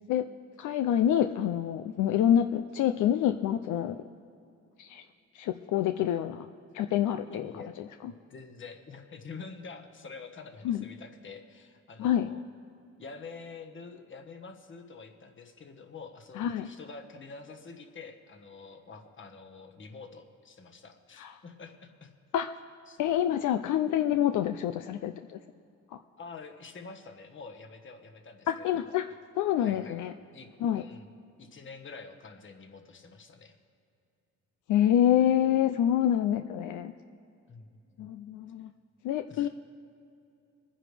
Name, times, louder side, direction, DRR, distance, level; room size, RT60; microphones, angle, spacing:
voice 1, 0.6-4.0 4.8-5.0 5.3-6.5 6.7-7.5 10.6-10.9 12.0-12.3 16.4-16.7 21.2-21.3 22.3-22.5 23.0-25.4 25.9-26.0 28.5-29.1 29.4-30.1 30.6-30.8 34.7-36.9 38.0-38.7 39.0-39.5, left 10 dB, 75° left, 8 dB, 0.5 m, -27 dB
voice 2, 7.3-7.8 8.0-12.4 13.0-22.1 22.9-23.0 26.2-29.0 29.6-30.0 30.3-31.1 31.4-33.6 37.5-37.7 38.0-38.1 39.3-39.5, left 4 dB, 40° left, 4 dB, 1.4 m, -47 dB
23.0 x 10.0 x 3.4 m, 2.6 s
cardioid pair, 90°, 30 cm